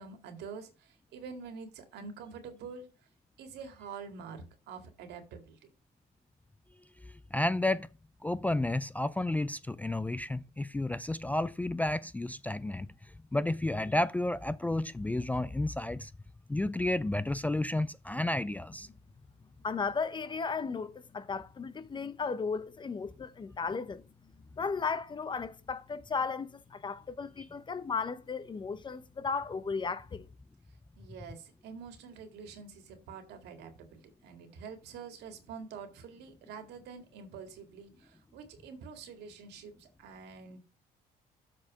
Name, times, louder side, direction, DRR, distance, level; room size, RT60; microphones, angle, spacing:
voice 1, 0.0-3.1 3.4-5.6 31.0-40.6, right 5 dB, 80° right, 2.1 m, -46 dB
voice 2, 7.0-7.9 8.2-12.9 13.3-16.1 16.5-18.9, left 2 dB, 10° left, 0.3 m, -31 dB
voice 3, 19.6-24.0 24.6-30.3, left 5 dB, 25° left, 0.7 m, -35 dB
7.6 x 4.2 x 6.3 m
cardioid pair, 110°, 17 cm